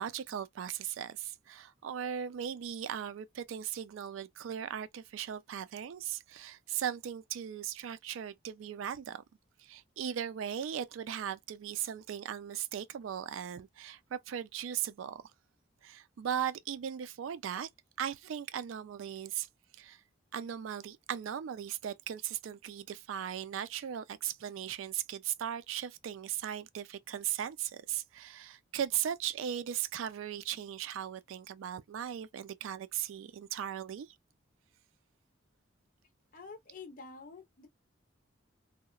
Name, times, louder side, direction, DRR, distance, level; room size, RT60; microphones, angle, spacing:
voice 1, 0.0-9.2 9.6-15.2 15.8-17.7 18.0-19.5 19.8-20.0 20.3-34.1, right 9 dB, 85° right, 0.3 m, -38 dB
voice 2, 36.3-37.7, left 4 dB, 45° left, 0.6 m, -48 dB
2.8 x 2.1 x 2.2 m
head